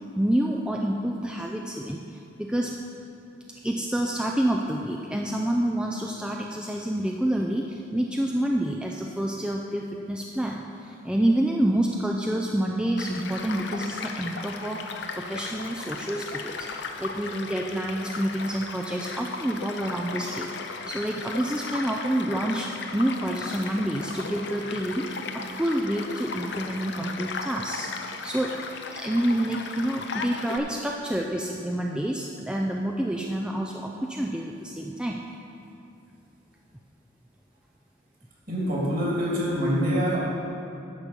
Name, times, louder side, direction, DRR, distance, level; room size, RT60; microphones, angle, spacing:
voice 1, 0.2-2.7 3.6-16.7 17.0-20.5 20.9-25.0 25.3-27.9 28.2-28.6 28.9-35.2, right 1 dB, 5° right, 0 dB, 0.3 m, -28 dB
Child speech kid speaking / Stream / Car passing by, 13.0-30.6, left 4 dB, 60° left, 0.7 m, -36 dB
voice 2, 38.5-40.2, equal, 45° right, -5 dB, 2.7 m, -25 dB
10.5 x 7.1 x 5.3 m, 2.6 s
head